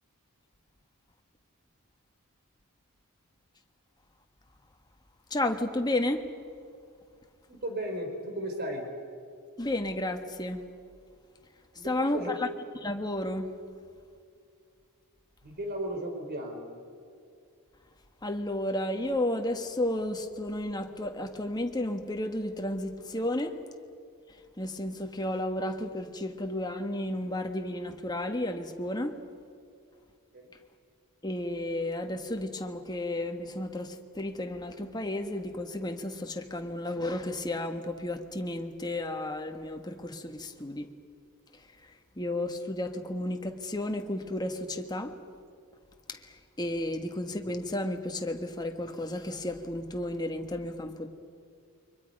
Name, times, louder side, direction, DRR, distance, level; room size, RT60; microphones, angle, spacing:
voice 1, 5.3-6.3 9.6-10.6 11.8-12.5 12.8-13.5 18.2-23.6 24.6-29.2 31.2-40.9 41.5-45.2 46.1-51.1, left 1 dB, 20° left, 5 dB, 1.5 m, -32 dB
voice 2, 7.5-8.8 11.8-12.3 15.4-16.6 30.3-30.5, right 1 dB, 45° right, 3 dB, 3.9 m, -35 dB
29.5 x 24.5 x 5.4 m, 2.3 s
head